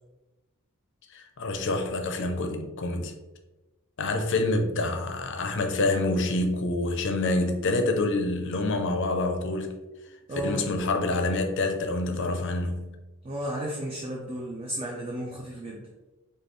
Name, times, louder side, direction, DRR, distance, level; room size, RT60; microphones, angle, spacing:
voice 1, 1.1-3.1 4.0-9.7 10.4-12.9, left 2 dB, 55° left, 0.5 m, -27 dB
voice 2, 10.3-10.6 13.2-15.9, right 1 dB, 25° right, 0.5 m, -33 dB
5.1 x 2.3 x 3.1 m
head